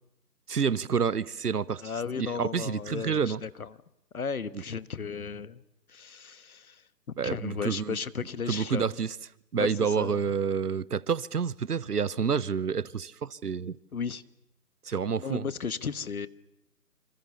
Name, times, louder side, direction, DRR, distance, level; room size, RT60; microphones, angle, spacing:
voice 1, 0.5-1.8 2.2-3.4 7.2-8.0 8.5-9.1 9.5-13.8 14.8-15.4, right 6 dB, 70° right, 22 dB, 1.0 m, -28 dB
voice 2, 1.8-3.7 4.1-5.6 5.9-6.8 7.2-9.0 9.6-10.2 13.9-14.2 14.9-16.3, left 6 dB, 60° left, 16 dB, 1.3 m, -35 dB
27.5 x 27.0 x 7.0 m, 0.84 s
figure-of-eight pair, 150°, 48 cm